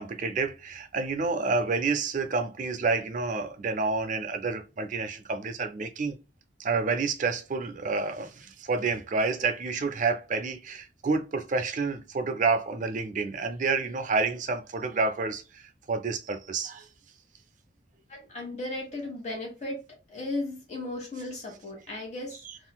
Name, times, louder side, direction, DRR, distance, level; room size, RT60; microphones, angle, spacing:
voice 1, 0.0-6.2 6.6-15.6 15.9-16.9 22.4-22.6, right 4 dB, 40° right, 0.4 m, -29 dB
voice 2, 18.1-19.8 20.1-22.4, left 2 dB, 35° left, 1.4 m, -35 dB
3.7 x 2.5 x 2.2 m
head